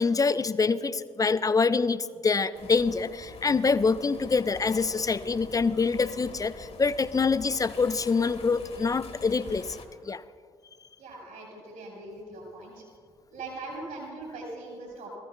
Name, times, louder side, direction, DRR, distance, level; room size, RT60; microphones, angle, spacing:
voice 1, 0.0-9.8 10.0-10.2, left 4 dB, 25° left, 15 dB, 0.4 m, -25 dB
sound 1, 2.5-9.9, left 4 dB, 40° left, 1.3 m, -45 dB
voice 2, 11.0-12.8 13.3-15.2, right 2 dB, 65° right, -1 dB, 3.3 m, -41 dB
20.5 x 14.0 x 2.3 m, 2.1 s
figure-of-eight pair, 40°, 15 cm